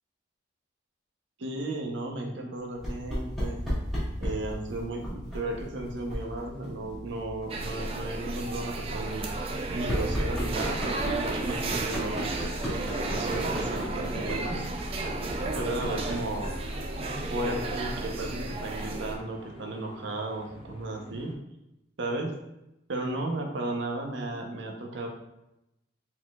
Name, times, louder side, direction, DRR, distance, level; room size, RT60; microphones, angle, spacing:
voice 1, 1.4-3.6 4.2-9.3 9.7-12.5 13.0-14.7 15.5-16.5 17.3-21.3 22.0-22.3 22.9-25.1, right 2 dB, 75° right, 1 dB, 0.8 m, -34 dB
sound 1, 2.8-18.9, equal, ahead, 1.4 m, -37 dB
sound 2, 7.5-19.1, right 2 dB, 30° right, 0.4 m, -33 dB
sound 3, 13.2-21.3, left 1 dB, 30° left, 0.6 m, -50 dB
4.2 x 4.1 x 2.3 m, 0.88 s
head